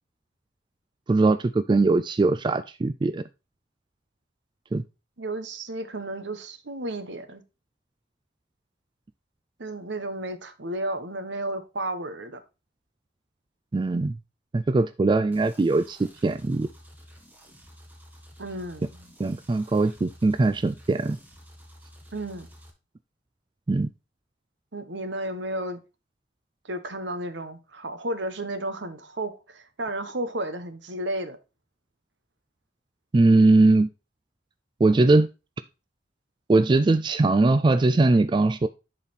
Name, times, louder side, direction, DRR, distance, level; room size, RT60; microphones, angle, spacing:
voice 1, 1.1-3.2 4.7-4.8 13.7-14.2 14.5-16.7 19.2-21.2 23.7-23.9 33.1-33.9 34.8-35.3 36.5-38.7, right 2 dB, 25° right, 0.3 m, -21 dB
voice 2, 5.2-7.4 9.6-12.4 18.4-19.1 22.1-22.5 24.7-25.8 26.6-31.4, right 1 dB, 70° right, 1.2 m, -33 dB
sound 1, 15.3-22.7, equal, 10° right, 1.6 m, -51 dB
10.5 x 4.2 x 4.1 m
head